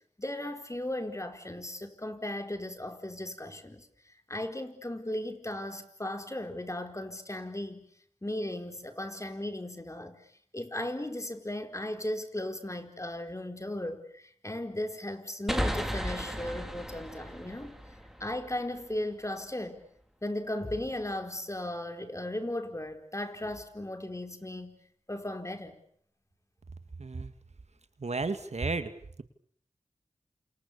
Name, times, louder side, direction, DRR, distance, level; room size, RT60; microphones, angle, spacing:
voice 1, 0.2-7.8 8.2-10.2 10.5-17.7 18.2-19.8 20.2-24.8 25.1-25.7, left 1 dB, 25° left, 6 dB, 4.6 m, -36 dB
sound 1, 15.5-19.0, equal, 5° right, 4.1 m, -35 dB
voice 2, 27.0-27.3 28.0-28.9, right 3 dB, 60° right, 10 dB, 2.2 m, -32 dB
28.5 x 28.5 x 7.0 m, 0.64 s
cardioid pair, 40°, 13 cm